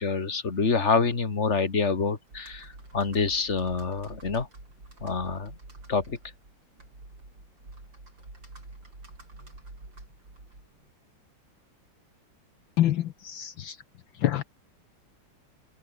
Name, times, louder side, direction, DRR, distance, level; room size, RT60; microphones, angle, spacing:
voice 1, 0.0-4.5 5.0-5.5 5.9-6.2, left 4 dB, 35° left, 2.5 m, -27 dB
Computer keyboard, 2.3-10.9, right 2 dB, 60° right, 7.9 m, -48 dB
voice 2, 12.8-13.8 14.2-14.4, left 12 dB, 70° left, 1.5 m, -26 dB
omnidirectional pair, 2.3 m